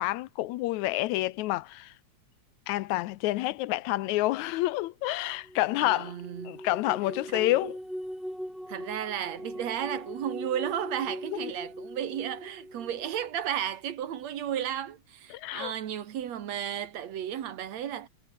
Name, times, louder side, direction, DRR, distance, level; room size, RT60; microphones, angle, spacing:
voice 1, 0.0-1.9 2.7-6.2 6.5-7.8 11.4-11.5 15.3-15.7, left 17 dB, 80° left, 2.0 m, -28 dB
sound 1, 5.4-13.3, equal, ahead, 6.2 m, -41 dB
voice 2, 5.8-6.6 7.3-7.5 8.7-18.1, right 10 dB, 65° right, 2.7 m, -34 dB
omnidirectional pair, 3.3 m